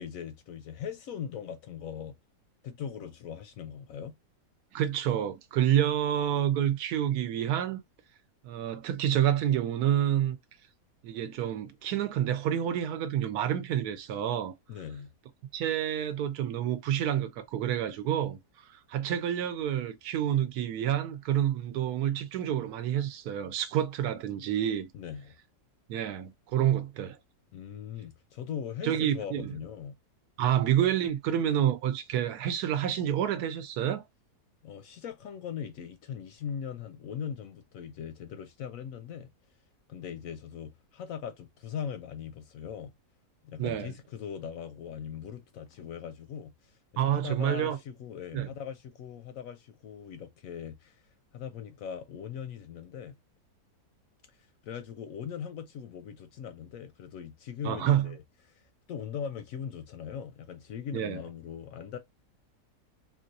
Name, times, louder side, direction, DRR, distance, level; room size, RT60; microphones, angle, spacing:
voice 1, 0.0-2.2 2.6-4.2 14.7-15.1 24.9-25.3 27.5-29.9 34.6-39.3 39.9-42.9 43.4-46.8 47.1-51.0 51.3-53.2 54.6-58.2 58.5-58.6 58.9-62.0, left 8 dB, 70° left, 0.9 m, -40 dB
voice 2, 4.7-7.8 8.4-10.4 11.0-14.5 15.5-18.4 18.7-24.9 25.9-27.2 28.8-29.4 30.4-34.0 43.6-43.9 47.0-47.8 48.3-48.5 57.6-58.1 60.9-61.2, right 10 dB, 75° right, 1.1 m, -28 dB
3.8 x 2.4 x 2.5 m
omnidirectional pair, 1.7 m